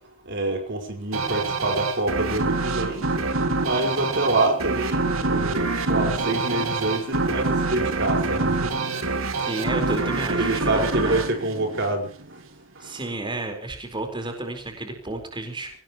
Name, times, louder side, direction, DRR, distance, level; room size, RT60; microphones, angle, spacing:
voice 1, 0.3-3.0 3.6-5.6 5.9-8.7 9.4-9.5 10.4-12.1, right 2 dB, 60° right, 3 dB, 5.0 m, -26 dB
sound 1, 1.1-12.4, right 3 dB, 90° right, 2.4 m, -26 dB
voice 2, 9.5-11.2 12.8-15.7, right 2 dB, 25° right, 4 dB, 4.5 m, -31 dB
24.5 x 18.5 x 3.1 m, 0.39 s
head